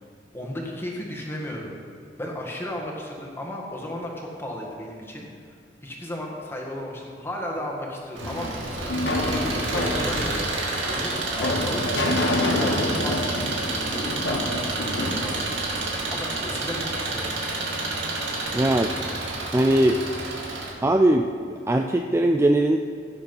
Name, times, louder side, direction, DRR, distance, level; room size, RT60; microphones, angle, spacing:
voice 1, 0.3-1.7 2.2-5.3 5.8-10.5 10.8-15.6 16.1-17.4, left 1 dB, 15° left, -1 dB, 1.7 m, -34 dB
Engine, 8.1-20.7, right 2 dB, 85° right, 2.4 m, -29 dB
sound 1, 8.2-16.3, left 1 dB, 70° left, 1.2 m, -28 dB
voice 2, 18.5-18.9 19.5-20.0 20.8-21.3 21.7-22.8, right 1 dB, 15° right, 5 dB, 0.3 m, -19 dB
17.0 x 7.3 x 5.4 m, 2.3 s
head